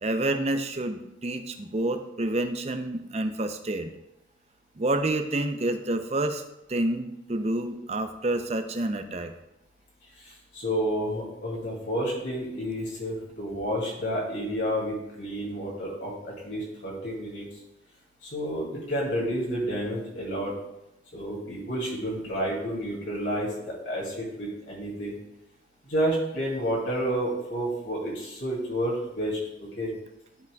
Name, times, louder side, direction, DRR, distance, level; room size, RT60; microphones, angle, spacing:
voice 1, 0.0-3.9 4.8-6.4 6.7-9.3, right 1 dB, 35° right, 7 dB, 0.5 m, -28 dB
voice 2, 10.2-17.5 18.2-20.5 21.1-25.2 25.8-29.9, equal, 70° left, -4 dB, 2.5 m, -30 dB
12.0 x 5.8 x 2.3 m, 0.88 s
head